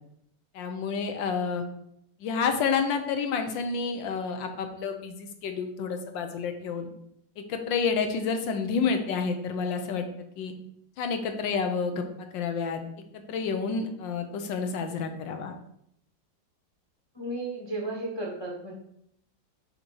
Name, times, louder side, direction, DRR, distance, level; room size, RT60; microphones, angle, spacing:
voice 1, 0.5-1.6 2.2-6.9 7.4-10.5 11.0-12.1 12.3-12.8 13.1-15.5, left 5 dB, 75° left, 6 dB, 1.5 m, -29 dB
voice 2, 17.1-18.7, right 2 dB, 25° left, -2 dB, 0.6 m, -34 dB
6.6 x 2.9 x 5.4 m, 0.73 s
omnidirectional pair, 2.1 m